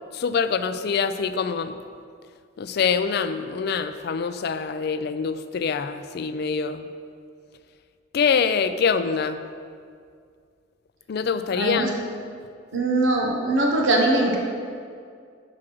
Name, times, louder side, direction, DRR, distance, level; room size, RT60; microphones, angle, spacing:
voice 1, 0.1-1.8 2.6-6.9 8.1-9.4 11.1-11.9, left 6 dB, 55° left, 11 dB, 0.4 m, -25 dB
voice 2, 11.5-11.9 12.7-14.4, right 2 dB, 90° right, 0 dB, 1.0 m, -21 dB
6.2 x 4.9 x 6.0 m, 2.2 s
head